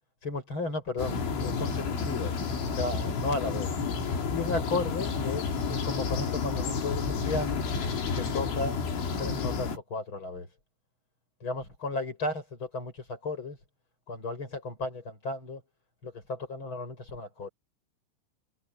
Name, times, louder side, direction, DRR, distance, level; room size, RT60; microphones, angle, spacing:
voice 1, 0.2-2.3 2.7-3.7 4.3-7.6 8.1-8.8 9.2-10.5 11.4-13.6 14.1-15.6 16.0-17.5, left 3 dB, 25° left, 7.8 m, -34 dB
sound 1, 1.0-9.8, left 5 dB, 65° left, 6.9 m, -30 dB
omnidirectional pair, 5.9 m